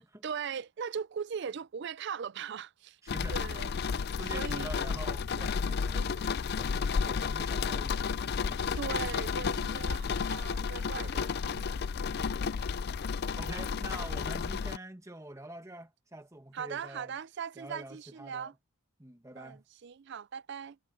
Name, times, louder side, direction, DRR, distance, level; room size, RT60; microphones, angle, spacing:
voice 1, 0.2-3.0 3.3-4.7 5.9-6.4 8.8-12.2 16.5-18.5 19.4-20.8, right 7 dB, 55° right, 0.4 m, -40 dB
voice 2, 3.0-3.4 3.9-6.1 6.4-8.8 13.4-17.2 17.5-18.5 19.0-19.6, right 1 dB, 15° right, 1.4 m, -46 dB
sound 1, 3.1-14.8, left 5 dB, 50° left, 0.4 m, -32 dB
head